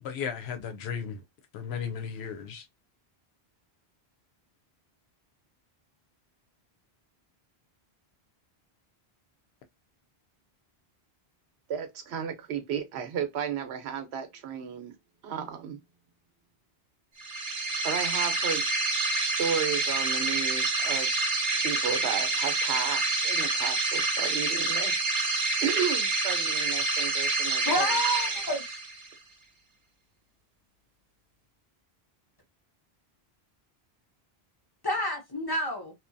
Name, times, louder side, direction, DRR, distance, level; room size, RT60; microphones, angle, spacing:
voice 1, 0.0-1.2 1.5-2.7, left 7 dB, 80° left, 0.8 m, -35 dB
voice 2, 11.7-14.9 15.2-15.8 17.8-18.6 19.2-21.1 21.6-24.9 25.6-27.9, right 8 dB, 85° right, 0.9 m, -33 dB
sound 1, 17.2-29.1, right 3 dB, 55° right, 0.7 m, -28 dB
voice 3, 27.7-28.7 34.8-35.9, equal, 35° left, 0.4 m, -29 dB
2.7 x 2.2 x 2.5 m
omnidirectional pair, 1.1 m